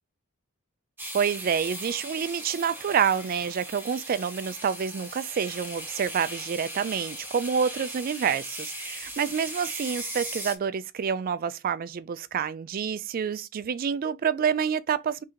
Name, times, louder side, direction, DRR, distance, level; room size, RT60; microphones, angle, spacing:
sound 1, 1.0-10.5, right 1 dB, 10° right, 1.0 m, -38 dB
voice 1, 1.1-15.2, right 7 dB, 40° right, 0.3 m, -28 dB
3.7 x 2.8 x 4.2 m
head